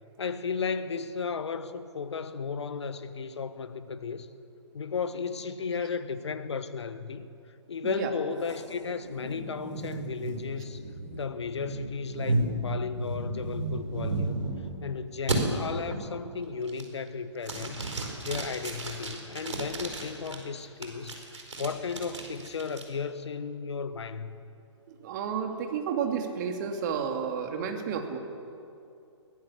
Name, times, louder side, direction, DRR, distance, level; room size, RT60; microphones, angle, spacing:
voice 1, 0.2-4.3 4.7-7.3 7.7-10.8 11.1-14.5 14.8-17.9 18.2-21.2 21.6-24.4, left 5 dB, 65° left, 12 dB, 1.3 m, -34 dB
sound 1, 8.5-14.8 15.3-15.4 15.9-16.2 16.6-17.1 17.4-20.4 20.8-22.8, right 2 dB, 75° right, 4.5 m, -34 dB
voice 2, 24.9-28.2, right 7 dB, 40° right, 4 dB, 2.5 m, -31 dB
22.5 x 17.0 x 7.4 m, 2.6 s
figure-of-eight pair, 130°, 16 cm